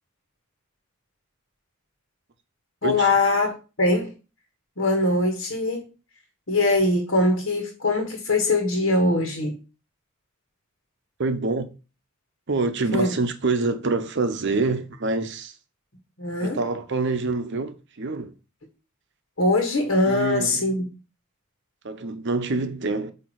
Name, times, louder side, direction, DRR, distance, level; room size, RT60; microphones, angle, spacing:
voice 1, 2.8-3.5 3.8-4.1 4.8-5.9 6.5-9.5 12.9-13.1 16.2-16.6 19.4-20.8, left 2 dB, 60° left, 1.5 m, -22 dB
voice 2, 11.2-11.7 12.5-15.5 16.4-18.3 20.1-20.6 21.8-23.1, right 3 dB, 55° right, 0.7 m, -26 dB
8.4 x 2.9 x 4.6 m
head